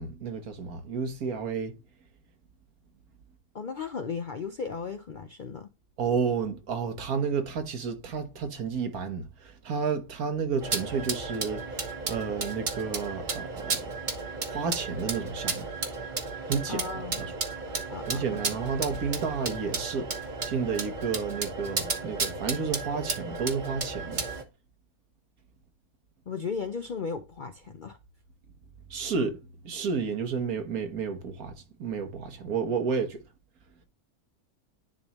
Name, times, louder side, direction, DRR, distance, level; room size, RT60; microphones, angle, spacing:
voice 1, 0.0-1.8 6.0-13.9 14.5-15.6 16.5-17.3 18.1-20.1 20.4-24.3 28.9-29.4 29.6-31.5 31.8-33.2, right 5 dB, 75° right, 1.6 m, -31 dB
voice 2, 3.5-5.7 16.7-17.2 17.9-18.2 26.3-28.0, left 5 dB, 60° left, 0.5 m, -35 dB
sound 1, 10.6-24.4, right 4 dB, 35° right, 1.1 m, -33 dB
10.5 x 3.4 x 2.9 m
omnidirectional pair, 1.5 m